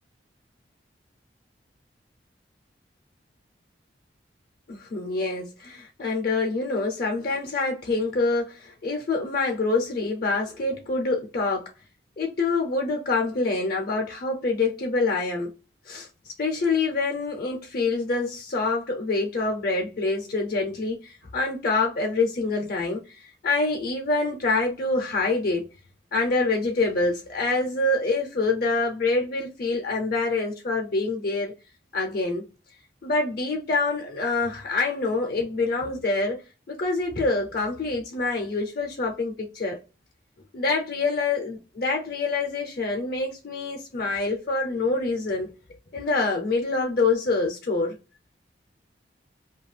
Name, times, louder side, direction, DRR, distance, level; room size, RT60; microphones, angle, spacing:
voice 1, 4.7-11.7 12.2-15.5 15.9-16.1 16.4-25.7 26.1-31.5 31.9-32.4 33.0-36.4 36.7-39.8 40.5-45.5 45.9-48.0, left 3 dB, 55° left, 0.5 m, -26 dB
2.5 x 2.3 x 3.2 m
head